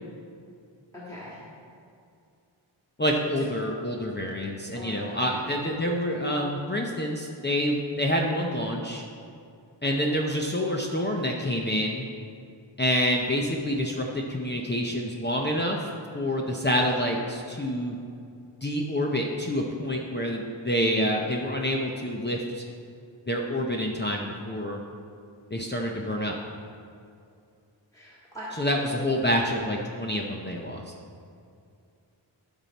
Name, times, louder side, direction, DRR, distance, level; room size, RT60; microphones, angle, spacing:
voice 1, 1.1-1.4 4.7-5.5 27.9-28.5, left 1 dB, 5° left, -8 dB, 1.8 m, -41 dB
voice 2, 3.0-9.0 9.8-12.0 12.8-15.9 16.1-17.9 18.6-22.6 23.3-24.8 25.5-26.3 28.5-30.8, equal, 20° left, -1 dB, 0.7 m, -27 dB
12.5 x 5.8 x 4.1 m, 2.4 s
wide cardioid pair, 90°, 47 cm